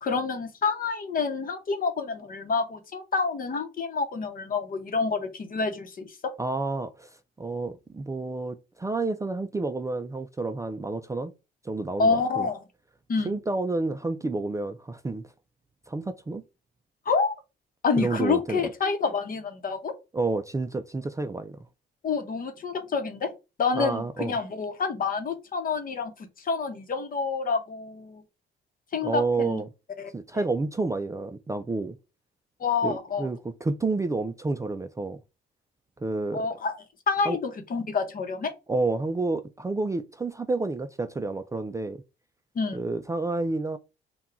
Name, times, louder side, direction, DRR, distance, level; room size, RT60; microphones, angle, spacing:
voice 1, 0.0-6.1 12.0-12.6 13.1-13.3 17.1-17.3 17.8-19.9 22.0-23.3 23.6-28.2 28.9-29.6 30.0-30.1 32.6-33.3 36.3-36.7 37.1-38.5 42.5-42.8, left 4 dB, 45° left, 0.9 m, -28 dB
voice 2, 6.4-7.1 7.4-11.3 11.6-12.5 13.2-15.3 15.9-16.4 18.0-18.7 20.1-21.6 23.7-24.3 29.0-29.7 30.1-32.0 32.8-35.2 36.0-36.5 37.3-37.4 38.7-42.0 42.7-43.8, right 3 dB, 15° right, 0.4 m, -29 dB
3.7 x 2.3 x 4.2 m
cardioid pair, 90°, 20 cm